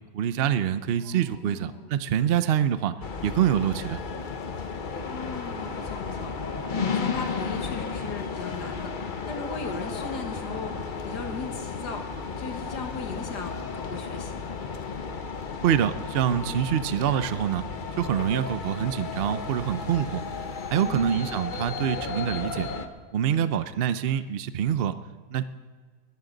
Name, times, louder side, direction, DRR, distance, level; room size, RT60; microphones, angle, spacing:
voice 1, 0.1-2.9 3.2-4.0 15.6-17.6 18.0-20.2 20.7-22.7 23.1-25.0 25.3-25.4, right 9 dB, 65° right, 12 dB, 0.5 m, -25 dB
voice 2, 1.0-1.9 5.1-14.5 20.7-21.2 23.2-23.5, left 4 dB, 80° left, 4 dB, 2.1 m, -38 dB
sound 1, 3.0-22.9, left 5 dB, 40° left, 0.8 m, -33 dB
20.5 x 14.5 x 3.9 m, 1.5 s
omnidirectional pair, 1.8 m